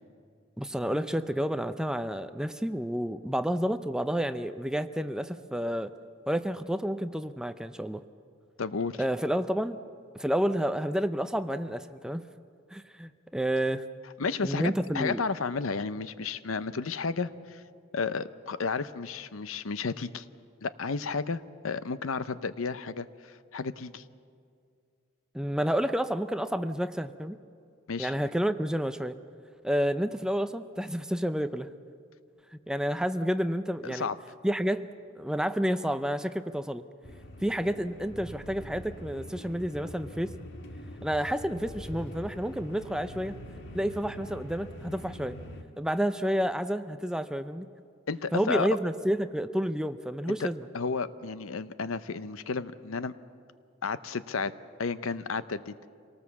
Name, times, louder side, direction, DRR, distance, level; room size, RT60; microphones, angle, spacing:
voice 1, 0.6-5.9 6.3-8.0 9.0-9.8 10.1-12.2 12.7-13.8 14.4-15.2 25.3-27.4 28.0-29.2 29.6-31.7 32.7-34.1 34.4-34.9 35.2-36.8 37.4-40.3 41.0-43.4 43.7-45.4 45.8-47.7 48.3-50.6, equal, 5° right, 10 dB, 0.5 m, -30 dB
voice 2, 8.6-9.0 14.2-17.6 17.9-20.2 20.6-24.0 27.9-28.1 33.8-34.1 48.1-48.7 50.4-50.5 50.7-53.1 53.8-54.5 54.8-55.9, left 4 dB, 80° left, 14 dB, 0.7 m, -32 dB
sound 1, 37.0-45.6, equal, 60° left, 1.7 m, -44 dB
26.0 x 18.5 x 7.1 m, 2.3 s
head